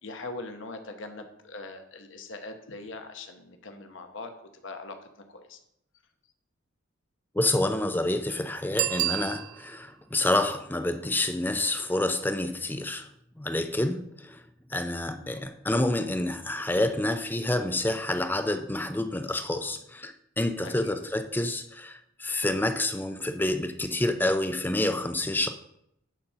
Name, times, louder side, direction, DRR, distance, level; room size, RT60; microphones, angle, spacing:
voice 1, 0.0-4.3 4.6-5.0 5.3-5.6 15.2-15.4 20.6-20.9, left 3 dB, 65° left, 1.0 m, -41 dB
voice 2, 7.3-13.1 13.4-14.4 14.7-25.5, left 1 dB, 10° left, 0.5 m, -28 dB
Bicycle bell, 8.7-9.9 15.4-15.5, right 17 dB, 85° right, 0.3 m, -30 dB
10.5 x 4.2 x 5.6 m
head